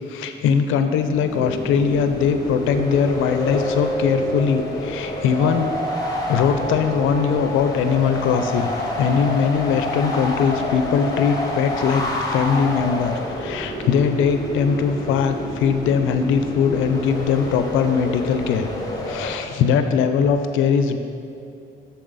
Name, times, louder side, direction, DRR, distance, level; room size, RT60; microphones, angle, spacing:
voice 1, 0.1-5.7 6.3-8.7 9.0-18.7 19.0-21.0, left 6 dB, 90° left, 8 dB, 0.5 m, -21 dB
sound 1, 1.0-19.3, left 1 dB, 20° left, 1.3 m, -29 dB
sound 2, 1.4-7.4, equal, 20° right, 1.1 m, -30 dB
11.5 x 4.2 x 4.0 m, 2.7 s
cardioid pair, 90°, 20 cm